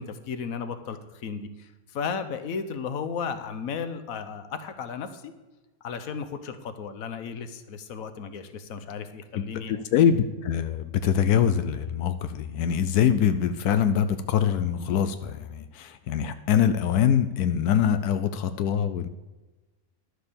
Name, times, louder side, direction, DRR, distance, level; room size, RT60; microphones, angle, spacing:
voice 1, 0.0-5.3 5.8-9.8, left 6 dB, 70° left, 10 dB, 1.3 m, -34 dB
voice 2, 9.3-19.1, left 8 dB, 90° left, 11 dB, 1.2 m, -24 dB
11.5 x 6.6 x 6.9 m, 1.2 s
omnidirectional pair, 1.6 m